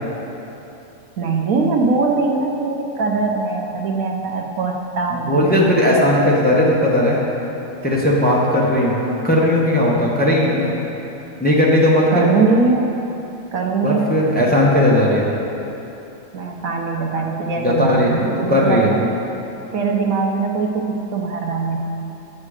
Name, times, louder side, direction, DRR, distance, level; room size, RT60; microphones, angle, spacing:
voice 1, 1.2-5.7 12.1-12.9 13.5-14.1 16.3-19.1 19.7-21.8, right 4 dB, 75° right, 1 dB, 1.3 m, -21 dB
voice 2, 5.1-7.3 7.8-10.7 11.4-12.0 13.8-15.3 17.6-19.0, left 1 dB, 5° left, -5 dB, 1.0 m, -17 dB
9.7 x 7.5 x 4.9 m, 3.0 s
omnidirectional pair, 1.5 m